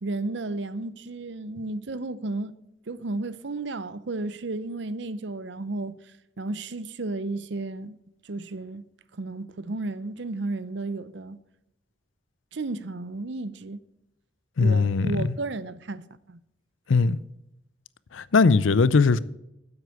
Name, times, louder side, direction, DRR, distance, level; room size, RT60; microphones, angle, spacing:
voice 1, 0.0-2.6 2.9-6.0 6.4-8.0 8.2-8.8 9.1-11.4 12.5-13.8 14.6-16.4, right 2 dB, 65° right, 0.7 m, -33 dB
voice 2, 14.6-15.3 16.9-17.2 18.1-19.2, left 4 dB, 90° left, 0.5 m, -20 dB
9.8 x 7.9 x 7.9 m
head